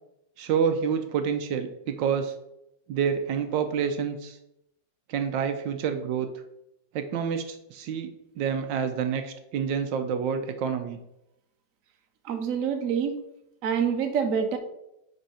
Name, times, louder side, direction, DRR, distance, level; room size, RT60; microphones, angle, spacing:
voice 1, 0.4-2.3 2.9-4.4 5.1-6.4 6.9-8.1 8.4-11.0, right 7 dB, 75° right, 7 dB, 1.2 m, -28 dB
voice 2, 12.2-13.1 13.6-14.6, right 7 dB, 55° right, 5 dB, 1.0 m, -26 dB
5.4 x 4.5 x 5.5 m, 0.84 s
omnidirectional pair, 2.1 m